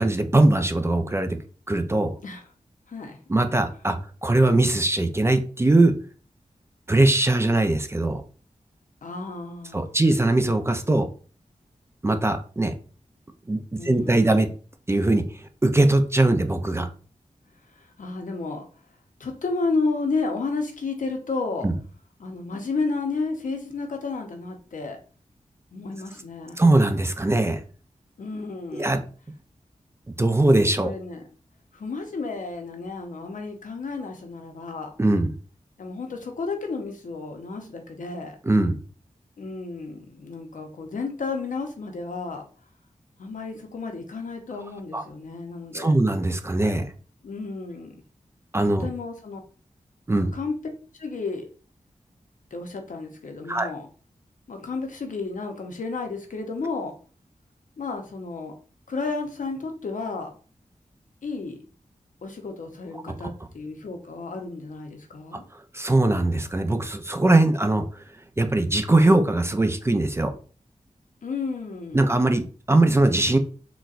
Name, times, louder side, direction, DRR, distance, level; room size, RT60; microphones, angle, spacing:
voice 1, 0.0-1.4 1.7-2.1 3.3-5.9 6.9-8.2 9.7-11.1 12.0-12.7 13.5-14.5 14.9-16.9 21.6-21.7 26.6-27.6 28.7-29.0 30.2-30.9 35.0-35.3 38.4-38.8 44.9-45.0 45.7-46.9 48.5-48.9 50.1-50.3 53.5-53.7 65.5-68.0 68.4-70.3 71.9-73.4, right 2 dB, 20° right, 7 dB, 0.4 m, -21 dB
voice 2, 9.0-10.0 13.8-14.4 17.8-18.6 19.2-21.7 22.2-25.0 25.7-26.6 28.2-29.0 30.8-31.2 31.7-34.9 35.8-38.3 39.4-42.4 43.2-45.9 47.2-47.9 48.8-49.4 50.2-50.5 51.0-51.5 52.5-53.9 54.5-56.9 57.8-58.5 58.9-60.3 61.2-61.6 62.2-65.4 71.2-72.2, left 3 dB, 75° left, 4 dB, 0.7 m, -32 dB
4.0 x 2.2 x 2.4 m, 0.38 s
wide cardioid pair, 75°, 13 cm